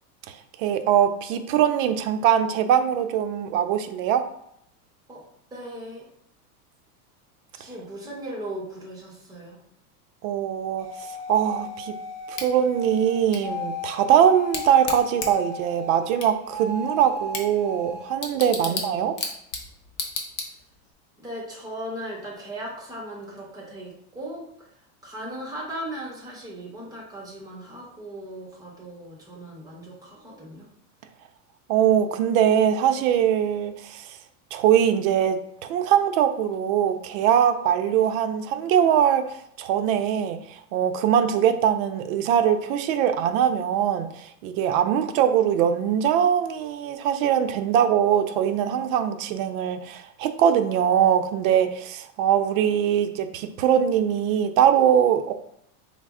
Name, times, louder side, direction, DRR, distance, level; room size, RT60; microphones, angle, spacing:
voice 1, 0.3-4.2 10.2-10.9 11.3-11.9 12.3-19.1 31.7-34.2 34.5-55.3, right 9 dB, 60° right, 8 dB, 0.5 m, -22 dB
voice 2, 5.5-6.0 7.5-9.6 18.6-19.1 21.2-24.7 25.0-30.7 38.0-38.2, right 1 dB, 10° right, -4 dB, 0.7 m, -37 dB
sound 1, 10.8-16.2 16.5-18.1, left 2 dB, 10° left, 0.3 m, -35 dB
Bicycle / Tick, 12.3-20.9, left 4 dB, 40° left, 0.7 m, -36 dB
4.0 x 2.0 x 3.5 m, 0.73 s
supercardioid pair, 145°, 46 cm